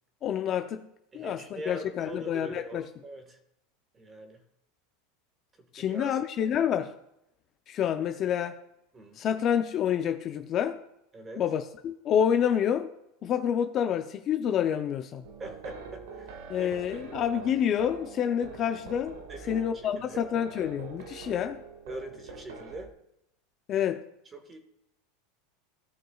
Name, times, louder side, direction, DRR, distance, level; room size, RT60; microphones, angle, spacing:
voice 1, 0.2-0.9 1.1-2.8 5.7-6.9 7.7-8.6 9.2-10.8 11.4-12.9 13.2-15.2 16.5-19.2 19.5-21.6 23.7-24.0, left 9 dB, 35° left, 0.5 m, -28 dB
voice 2, 1.1-3.4 3.9-4.4 5.6-6.2 8.9-9.2 11.1-11.4 15.4-17.1 19.3-20.2 21.3-21.5 21.9-22.9 24.3-24.6, right 2 dB, 20° right, 1.5 m, -43 dB
sound 1, 15.2-22.9, right 4 dB, 80° right, 1.3 m, -44 dB
17.0 x 6.2 x 2.4 m
supercardioid pair, 140°, 0 cm